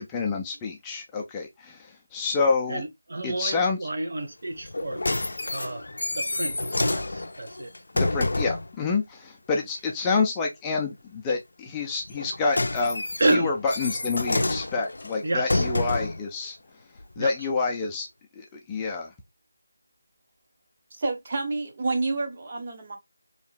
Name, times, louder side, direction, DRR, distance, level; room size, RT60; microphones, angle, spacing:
voice 1, 0.0-2.8 3.2-3.8 7.9-13.0 13.3-16.6 17.2-18.1 18.4-19.1, left 4 dB, 15° left, 0.4 m, -28 dB
voice 2, 2.7-5.0 5.5-5.8 6.1-7.7 13.2-13.5 15.2-15.7 17.2-17.3, right 2 dB, 60° right, 1.1 m, -29 dB
sound 1, 4.6-8.7 12.1-16.3 17.0-17.1, left 2 dB, 70° left, 0.4 m, -28 dB
voice 3, 20.9-23.0, right 3 dB, 40° right, 0.9 m, -29 dB
3.2 x 2.8 x 2.3 m
figure-of-eight pair, 165°, 0 cm